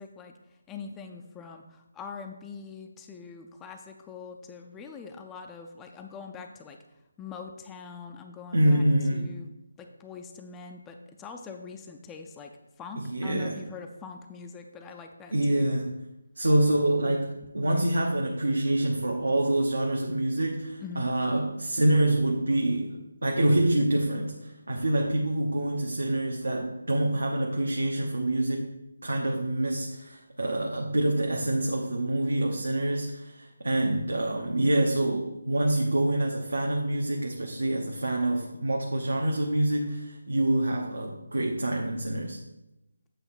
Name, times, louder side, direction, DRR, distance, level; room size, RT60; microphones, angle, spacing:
voice 1, 0.0-6.8 7.2-8.8 9.1-9.5 9.8-12.5 12.8-15.8 20.8-21.0, left 5 dB, 10° left, 4 dB, 0.4 m, -43 dB
voice 2, 8.5-9.4 13.0-13.6 15.3-15.9 16.4-28.7 29.0-42.4, right 1 dB, 75° right, 0 dB, 0.9 m, -26 dB
8.1 x 3.2 x 5.9 m, 0.93 s
figure-of-eight pair, 155°, 0 cm